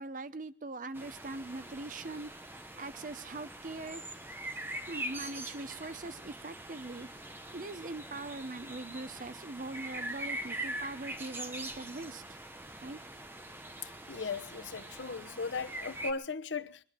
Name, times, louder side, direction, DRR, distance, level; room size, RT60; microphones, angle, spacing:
voice 1, 0.0-4.0 4.9-7.1 7.5-12.4 12.8-13.0, right 2 dB, 45° right, 0.8 m, -42 dB
sound 1, 0.9-16.1, right 1 dB, 10° right, 1.0 m, -43 dB
voice 2, 13.8-16.8, left 4 dB, 90° left, 1.0 m, -37 dB
23.0 x 11.0 x 5.8 m
head